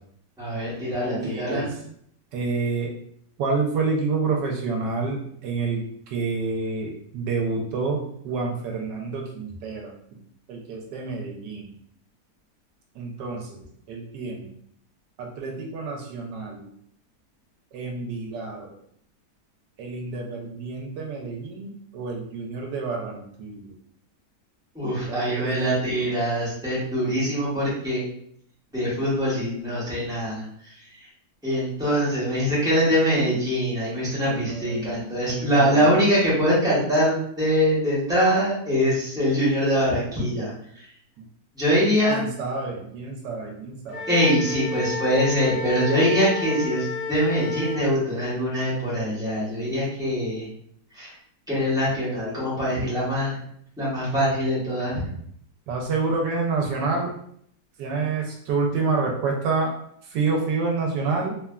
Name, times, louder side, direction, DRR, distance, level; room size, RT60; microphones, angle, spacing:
voice 1, 0.4-1.7 24.7-28.0 28.7-30.7 31.4-40.5 41.5-42.2 44.1-50.4 51.0-51.1 51.5-53.4 53.8-55.0, equal, 5° right, -8 dB, 0.8 m, -23 dB
voice 2, 1.2-1.7 2.3-2.9 3.4-5.8 6.1-9.9 10.5-11.7 13.0-13.6 13.9-14.5 15.2-16.6 17.7-18.7 19.8-23.7 25.1-26.1 34.2-35.9 41.2-41.3 42.1-44.1 55.0-55.1 55.7-57.1 57.8-59.7 60.1-61.5, right 4 dB, 85° right, 0 dB, 1.2 m, -28 dB
Wind instrument woodwind instrument, 43.9-47.8, left 4 dB, 60° left, 1.5 m, -31 dB
3.2 x 2.2 x 2.3 m, 0.67 s
omnidirectional pair, 1.8 m